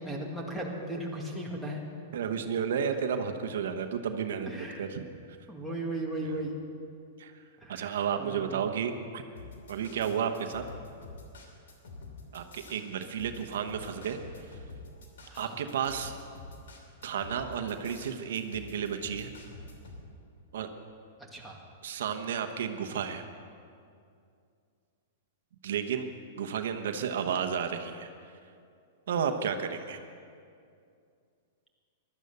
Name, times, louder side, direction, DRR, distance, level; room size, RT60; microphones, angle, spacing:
voice 1, 0.0-1.8 4.5-4.8 5.5-6.6 7.6-8.7 15.3-15.6 21.3-21.6, right 1 dB, ahead, -1 dB, 2.1 m, -37 dB
voice 2, 2.1-5.1 6.2-6.4 7.2-7.3 7.7-9.2 9.7-10.6 12.3-14.2 15.4-16.1 17.0-19.3 20.5-20.7 21.8-23.2 25.6-26.1 26.4-28.1 29.1-30.0, right 7 dB, 75° right, 7 dB, 1.0 m, -32 dB
sound 1, 9.3-20.0, left 3 dB, 85° left, 3.0 m, -47 dB
15.5 x 12.0 x 6.7 m, 2.4 s
hypercardioid pair, 145°, 0 cm